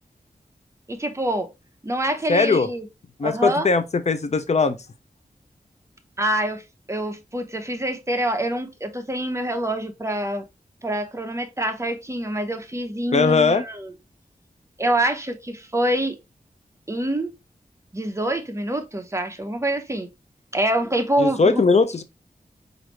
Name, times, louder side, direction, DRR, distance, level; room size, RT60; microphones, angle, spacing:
voice 1, 0.9-1.5 1.8-2.9 3.2-3.7 6.2-6.6 6.9-10.4 10.8-13.9 14.8-16.2 16.9-17.3 17.9-20.1 20.5-21.6, right 1 dB, 20° right, 0.8 m, -25 dB
voice 2, 2.3-2.7 3.2-4.8 13.1-13.6 21.2-22.0, left 4 dB, 45° left, 0.6 m, -19 dB
4.8 x 2.6 x 3.0 m
wide cardioid pair, 65°, 15 cm